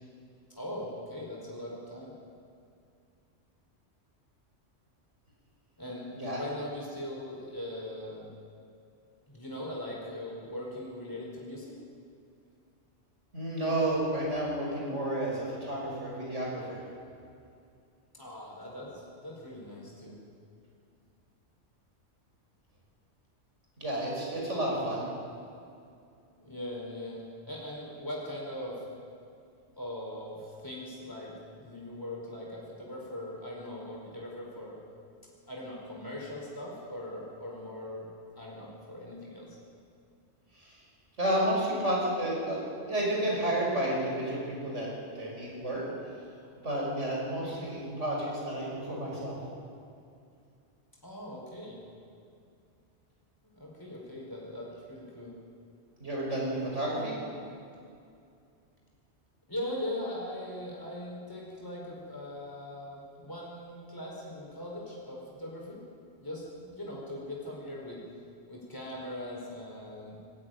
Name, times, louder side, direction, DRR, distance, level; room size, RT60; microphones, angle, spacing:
voice 1, 0.5-2.1 5.8-8.3 9.3-11.7 18.1-20.2 26.4-28.9 29.8-34.8 35.5-38.1 38.3-39.6 51.0-51.8 53.4-55.3 59.5-65.8 66.2-68.0 68.5-70.2, left 1 dB, 15° left, -4 dB, 5.0 m, -40 dB
voice 2, 13.3-16.8 23.8-25.0 40.6-40.7 41.2-42.6 42.9-44.9 45.2-45.8 46.6-49.4 56.0-57.1, right 1 dB, 85° right, -3 dB, 6.0 m, -31 dB
20.5 x 14.5 x 9.4 m, 2.4 s
omnidirectional pair, 1.2 m